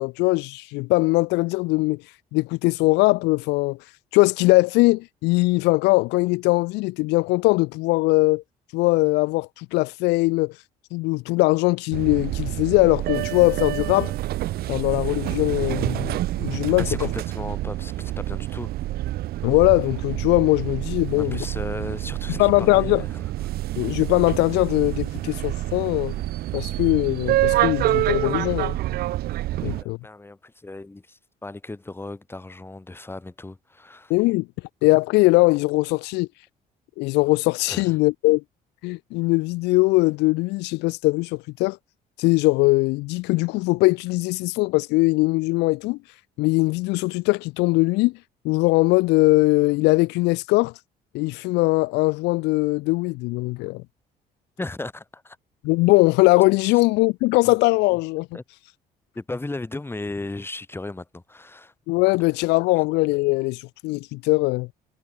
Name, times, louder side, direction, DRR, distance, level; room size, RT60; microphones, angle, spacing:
voice 1, 0.0-2.0 2.3-3.8 4.1-8.4 8.7-10.5 10.9-14.1 14.7-16.9 19.4-21.5 22.4-23.0 23.8-26.1 26.5-28.8 29.6-30.0 34.1-34.5 34.8-36.3 37.0-38.4 38.8-41.8 42.2-46.0 46.4-48.1 48.4-50.7 51.1-53.8 55.6-58.3 61.9-64.7, left 23 dB, 90° left, 0.4 m, -21 dB
sound 1, 11.9-29.8, right 15 dB, 65° right, 0.6 m, -27 dB
voice 2, 16.8-18.7 21.2-23.2 29.5-34.2 37.7-38.0 54.6-55.4 56.6-56.7 57.5-57.6 58.3-58.4 59.1-61.7, left 2 dB, 15° left, 5.8 m, -36 dB
cardioid pair, 110°, 17 cm